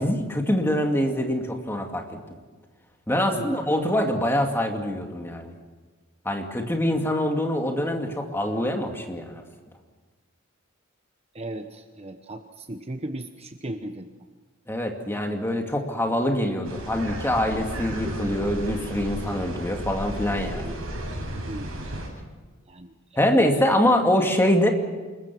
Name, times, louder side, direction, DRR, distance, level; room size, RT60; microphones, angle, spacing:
voice 1, 0.0-2.2 3.1-5.5 6.2-9.4 14.7-20.7 23.2-24.7, left 1 dB, 10° left, 3 dB, 2.4 m, -24 dB
voice 2, 11.3-14.1 21.5-21.9 22.7-22.9 23.3-23.5, right 1 dB, 30° right, 7 dB, 1.0 m, -36 dB
sound 1, 16.6-22.1, right 1 dB, 75° right, 7.6 m, -33 dB
26.5 x 21.5 x 6.2 m, 1.4 s
head